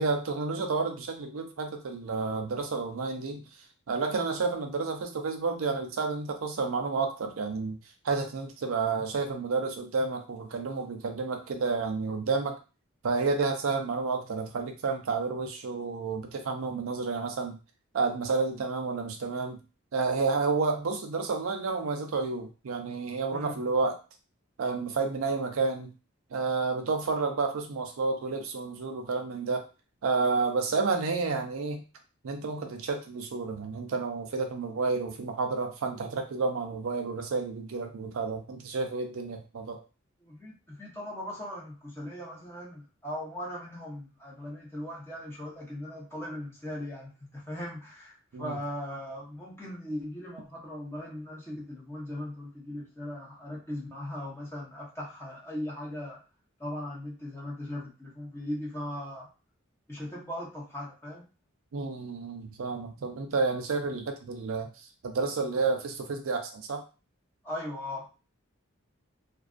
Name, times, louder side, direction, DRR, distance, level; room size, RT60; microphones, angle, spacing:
voice 1, 0.0-3.5 3.9-7.8 8.0-12.6 13.0-17.6 17.9-19.6 19.9-24.0 24.6-25.9 26.3-29.7 30.0-31.8 32.2-39.8 48.3-48.6 61.7-66.8, right 4 dB, 80° right, 5 dB, 0.5 m, -30 dB
voice 2, 40.2-56.2 56.6-59.3 59.9-61.2 67.4-68.1, left 1 dB, 10° left, -5 dB, 0.9 m, -39 dB
2.4 x 2.3 x 2.4 m, 0.32 s
head